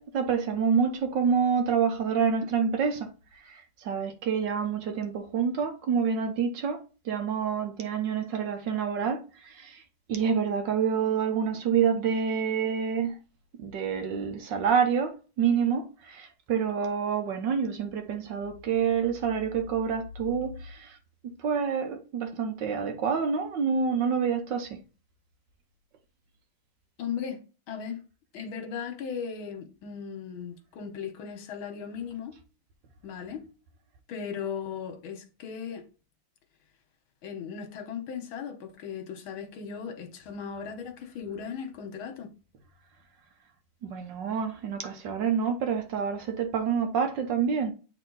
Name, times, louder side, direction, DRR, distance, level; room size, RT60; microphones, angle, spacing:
voice 1, 0.0-3.1 3.5-9.8 10.1-13.2 13.6-21.0 21.4-24.8 43.8-47.7, right 6 dB, 65° right, 1.4 m, -27 dB
voice 2, 27.0-28.0 28.3-32.3 33.0-33.4 34.1-35.9 37.2-42.3, left 7 dB, 75° left, 1.8 m, -37 dB
8.2 x 3.5 x 3.9 m
omnidirectional pair, 2.3 m